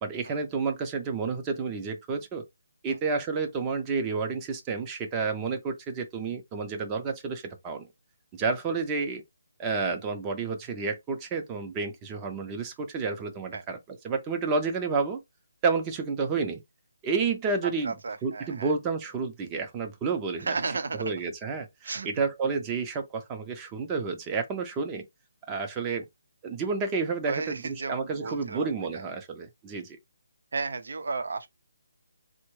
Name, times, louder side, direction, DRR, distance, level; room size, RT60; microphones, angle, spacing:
voice 1, 0.0-2.4 2.8-7.9 8.3-9.2 9.6-15.2 15.6-16.6 17.0-17.9 18.2-20.6 21.0-25.1 25.5-26.0 26.4-30.0, right 4 dB, 15° right, 0.6 m, -30 dB
voice 2, 17.8-18.7 20.4-21.1 21.8-22.1 27.3-29.1 30.5-31.5, right 4 dB, 65° right, 0.7 m, -34 dB
3.6 x 2.1 x 3.1 m
hypercardioid pair, 165°, 0 cm